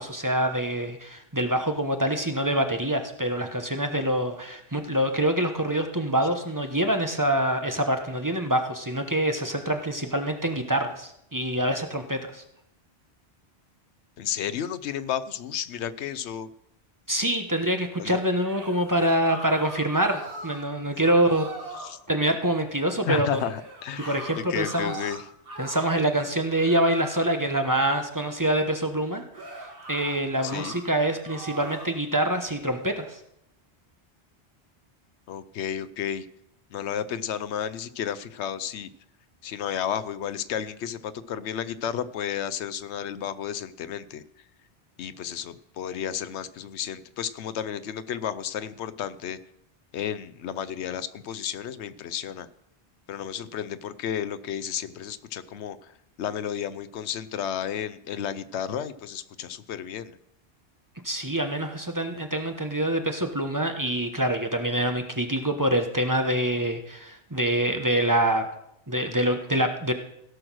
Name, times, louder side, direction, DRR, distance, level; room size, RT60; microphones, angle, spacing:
voice 1, 0.0-12.4 17.1-21.5 22.1-23.4 24.1-25.0 25.6-29.6 29.9-33.2 61.0-68.5 68.9-69.9, right 1 dB, 20° right, 5 dB, 1.1 m, -25 dB
voice 2, 14.2-16.5 17.1-17.3 18.0-18.2 21.8-22.0 23.0-24.2 24.5-25.2 30.4-30.7 35.3-36.3 36.7-38.9 39.4-44.2 45.0-49.4 49.9-52.5 53.1-55.9 56.2-60.2, left 9 dB, 85° left, 15 dB, 0.9 m, -32 dB
sound 1, 18.3-20.7 21.0-22.0 23.3-26.1 26.5-27.4 29.3-30.8 31.2-32.0, right 2 dB, 55° right, 2.2 m, -40 dB
16.5 x 6.3 x 6.2 m, 0.76 s
omnidirectional pair, 1.1 m